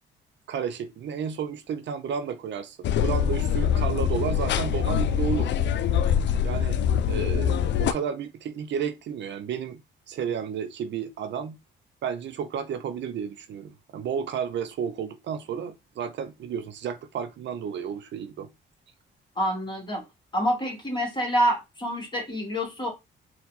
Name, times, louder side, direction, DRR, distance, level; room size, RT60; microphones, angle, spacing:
voice 1, 0.5-5.5 6.4-6.8 7.1-9.8 10.1-11.6 12.0-18.5, right 7 dB, 65° right, 0.6 m, -32 dB
sound 1, 2.8-7.9, left 8 dB, 65° left, 0.5 m, -24 dB
voice 2, 19.4-20.0 20.3-22.9, equal, 25° left, 2.1 m, -27 dB
4.3 x 2.4 x 4.0 m
cardioid pair, 90°, 20 cm